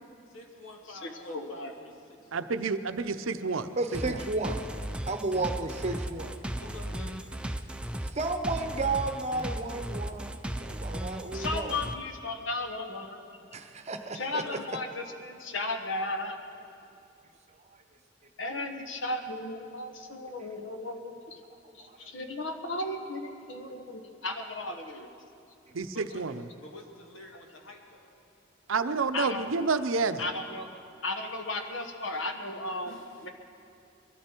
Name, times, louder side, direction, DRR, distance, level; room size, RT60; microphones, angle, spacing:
voice 1, 0.3-2.4 2.6-2.8 6.5-7.2 14.3-14.6 25.9-28.1 32.9-33.3, left 2 dB, 85° left, 1 dB, 2.0 m, -49 dB
voice 2, 1.0-1.7 11.3-13.6 14.1-16.6 18.4-21.4 21.7-25.1 29.1-29.5 30.2-30.7 31.0-32.9 33.2-33.3, left 2 dB, 65° left, 5 dB, 1.3 m, -35 dB
voice 3, 2.3-4.2 25.7-26.4 28.7-30.3, right 4 dB, 85° right, 11 dB, 0.6 m, -29 dB
voice 4, 3.8-4.7 5.1-6.4 8.1-11.7 13.5-14.2 21.8-21.9, right 3 dB, 35° right, 7 dB, 0.9 m, -32 dB
sound 1, 3.9-12.0, right 1 dB, 5° right, 0.5 m, -36 dB
22.0 x 13.5 x 4.5 m, 2.5 s
head